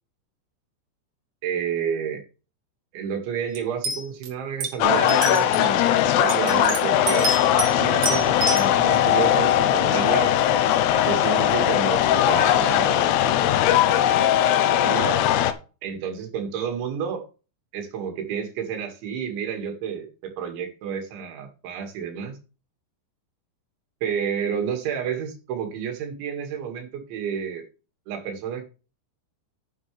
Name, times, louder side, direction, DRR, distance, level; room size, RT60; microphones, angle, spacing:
voice 1, 1.4-2.2 2.9-7.3 7.7-10.3 11.0-13.4 13.8-15.2 15.8-17.2 17.7-22.4 24.0-27.6 28.1-28.6, right 7 dB, 80° right, 5 dB, 4.4 m, -30 dB
sound 1, 3.6-3.7 3.8-4.3 4.6-4.7 5.1-5.7 6.3-7.7 8.0-8.7, right 2 dB, 50° right, 3.4 m, -27 dB
sound 2, 4.8-15.5, left 11 dB, 80° left, 2.7 m, -20 dB
11.0 x 8.7 x 3.4 m, 0.33 s
omnidirectional pair, 5.2 m